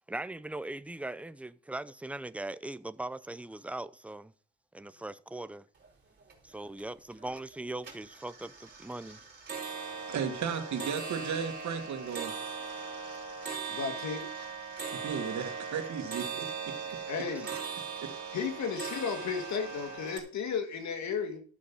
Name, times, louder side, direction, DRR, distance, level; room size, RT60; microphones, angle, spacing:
voice 1, 0.1-4.3 4.7-5.7 6.4-9.3, right 2 dB, 5° right, 0.6 m, -40 dB
sound 1, 5.8-5.9 6.2-6.8 7.2-7.5 7.8-20.2, right 5 dB, 35° right, 4.5 m, -39 dB
voice 2, 10.1-12.3 14.9-16.8 17.5-17.7 18.0-18.1, right 7 dB, 70° right, 2.2 m, -35 dB
voice 3, 13.7-14.3 17.1-17.5 18.3-21.4, left 6 dB, 65° left, 2.2 m, -34 dB
13.0 x 6.5 x 5.5 m
cardioid pair, 90°, 30 cm